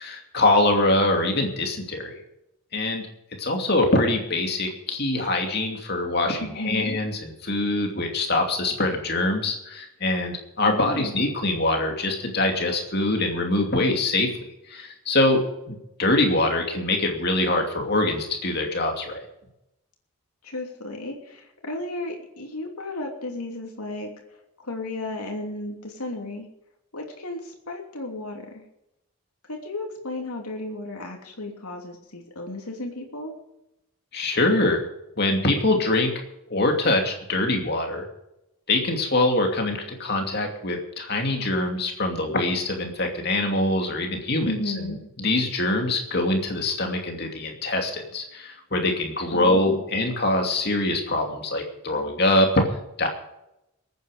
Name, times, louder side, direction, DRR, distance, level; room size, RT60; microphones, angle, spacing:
voice 1, 0.0-2.1 2.7-3.1 3.4-14.3 14.7-19.2 34.1-34.9 35.2-36.1 36.5-38.1 38.7-52.5 53.0-53.1, left 2 dB, 45° left, 3 dB, 2.7 m, -24 dB
voice 2, 6.4-7.0 10.6-11.1 20.4-24.1 24.6-26.5 26.9-28.6 29.5-33.3 44.4-45.0 49.3-49.8, left 2 dB, 90° left, 1 dB, 2.9 m, -34 dB
22.0 x 9.4 x 5.1 m, 0.88 s
head